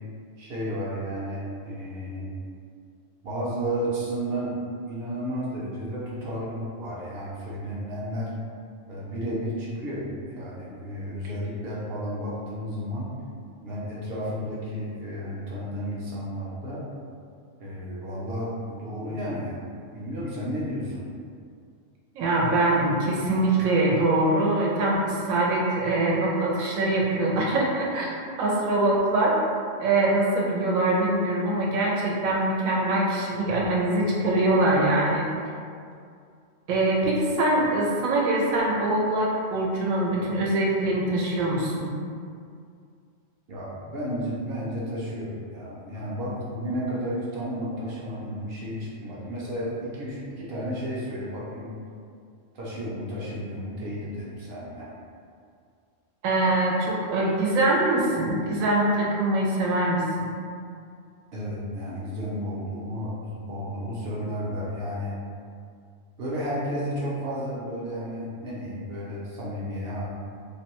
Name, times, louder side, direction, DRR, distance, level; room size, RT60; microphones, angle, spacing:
voice 1, 0.4-2.3 3.2-4.6 4.9-8.3 8.9-13.1 13.6-16.8 17.6-19.6 19.9-21.0 43.5-51.7 52.5-54.9 61.3-65.2 66.2-70.1, equal, 60° right, -6 dB, 0.7 m, -32 dB
voice 2, 22.1-28.1 28.4-29.4 29.8-35.3 36.7-41.9 56.2-60.3, right 2 dB, 85° right, -3 dB, 1.0 m, -23 dB
2.6 x 2.2 x 2.9 m, 2.3 s
omnidirectional pair, 1.4 m